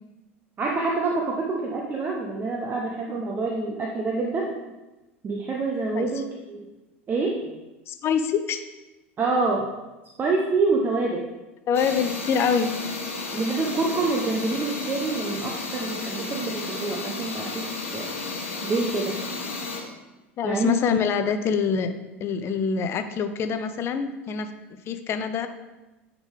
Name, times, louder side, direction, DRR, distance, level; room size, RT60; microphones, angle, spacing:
voice 1, 0.6-4.5 5.2-6.6 7.1-7.5 9.2-9.7 10.2-11.3 13.3-18.1 18.6-19.2 20.4-20.7, right 3 dB, 25° right, -1 dB, 0.8 m, -26 dB
voice 2, 7.9-8.6 11.7-12.7 20.4-21.9 22.2-25.5, left 6 dB, 35° left, 9 dB, 0.6 m, -25 dB
sound 1, 11.7-19.8, left 3 dB, 80° left, 1.1 m, -33 dB
9.7 x 3.7 x 3.4 m, 1.1 s
figure-of-eight pair, 80°, 7 cm